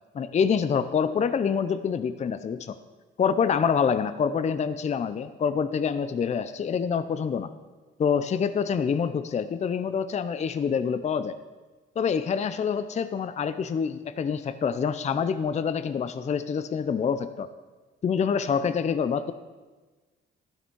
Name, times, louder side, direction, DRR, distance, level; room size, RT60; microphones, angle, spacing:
voice 1, 0.1-2.8 3.2-7.5 8.0-11.3 12.0-17.5 18.0-19.3, left 6 dB, 35° left, 12 dB, 0.5 m, -26 dB
12.5 x 6.7 x 4.6 m, 1.3 s
cardioid pair, 90°, 20 cm